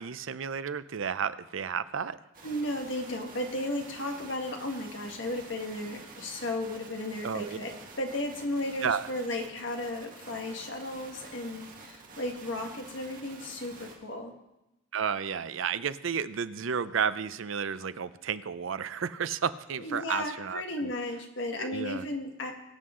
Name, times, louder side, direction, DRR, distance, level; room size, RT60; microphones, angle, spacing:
voice 1, 0.0-2.2 7.2-7.6 8.8-9.1 14.9-20.9 21.6-22.0, right 7 dB, 70° right, 14 dB, 0.5 m, -32 dB
sound 1, 2.3-13.9, right 3 dB, 40° right, 2.0 m, -49 dB
voice 2, 2.4-14.3 19.8-22.5, left 1 dB, 60° left, 3 dB, 1.7 m, -34 dB
21.5 x 7.8 x 3.8 m, 0.94 s
head